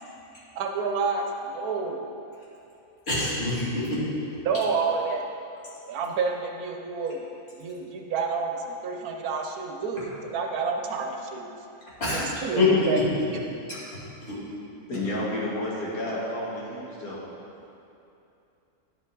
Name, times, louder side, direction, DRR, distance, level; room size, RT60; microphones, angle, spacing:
voice 1, 0.5-2.0 4.4-5.2 5.9-7.2 7.6-11.5 12.1-13.4, right 4 dB, 80° right, 3 dB, 1.2 m, -29 dB
voice 2, 3.1-4.0 12.0-12.9 13.7-13.8 14.2-14.4, left 3 dB, 45° left, -9 dB, 2.4 m, -25 dB
voice 3, 14.9-17.2, left 1 dB, 80° left, -6 dB, 1.9 m, -31 dB
10.5 x 4.9 x 3.9 m, 2.8 s
omnidirectional pair, 1.6 m